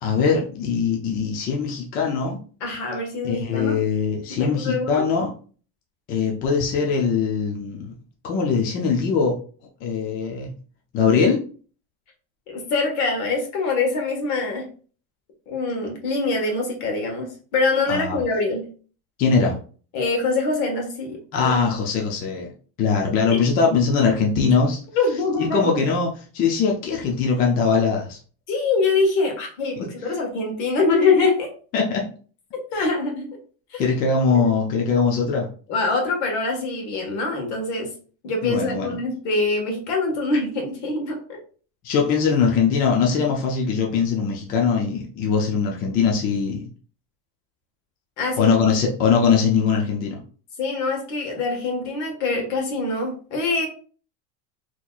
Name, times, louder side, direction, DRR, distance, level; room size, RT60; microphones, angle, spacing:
voice 1, 0.0-2.4 3.2-5.3 6.1-7.9 8.2-9.4 9.8-10.5 10.9-11.4 17.9-18.2 19.2-19.5 21.3-22.5 22.8-24.8 25.5-28.2 29.8-29.9 31.7-32.0 32.7-32.9 33.8-35.5 38.4-39.0 41.8-46.7 48.4-50.2, left 5 dB, 25° left, 0 dB, 0.4 m, -21 dB
voice 2, 2.6-3.8 4.3-5.1 12.5-14.7 15.5-18.6 19.9-21.5 24.9-25.8 28.5-31.5 32.5-33.3 33.7-33.8 34.3-34.5 35.7-37.9 38.2-41.4 48.2-48.6 50.6-53.7, left 3 dB, 60° left, 2 dB, 1.4 m, -24 dB
4.1 x 2.9 x 2.3 m, 0.41 s
cardioid pair, 170°, 33 cm